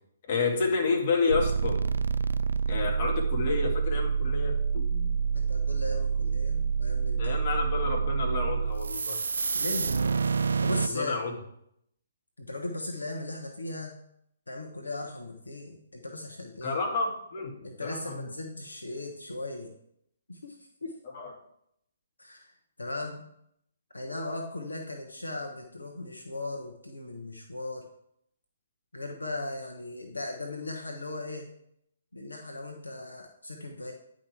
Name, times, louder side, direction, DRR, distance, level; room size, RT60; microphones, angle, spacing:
voice 1, 0.2-1.8 2.7-4.8 7.2-9.2 10.9-11.3 16.6-18.3 21.1-21.3, left 4 dB, 40° left, -1 dB, 1.9 m, -30 dB
sound 1, 1.3-10.9, right 5 dB, 65° right, 0.3 m, -27 dB
voice 2, 4.9-7.3 9.5-10.2 10.6-11.2 12.4-14.0 14.5-16.8 17.6-19.7 20.3-21.0 22.2-22.5 22.8-23.2 23.9-27.8 28.9-31.5 32.1-33.9, left 2 dB, 80° left, 2 dB, 1.1 m, -38 dB
10.0 x 5.1 x 3.5 m, 0.73 s
figure-of-eight pair, 130°, 0 cm